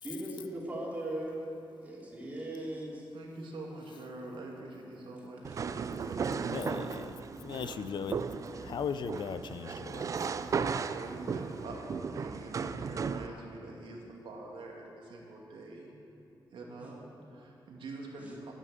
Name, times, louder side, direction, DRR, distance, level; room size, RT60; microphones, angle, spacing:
voice 1, 0.0-1.4 1.8-3.1 7.8-8.4 16.8-16.9 18.2-18.3, right 1 dB, 15° right, -5 dB, 3.3 m, -39 dB
voice 2, 3.1-6.5 8.5-8.6 10.9-16.0 16.5-18.5, right 2 dB, 90° right, -1 dB, 2.3 m, -45 dB
sound 1, 5.4-13.3, right 5 dB, 40° right, 0.4 m, -36 dB
voice 3, 6.5-7.1 7.4-8.2 8.6-10.1, left 7 dB, 65° left, 11 dB, 0.5 m, -37 dB
13.5 x 9.2 x 7.7 m, 2.8 s
wide cardioid pair, 160°, 8 cm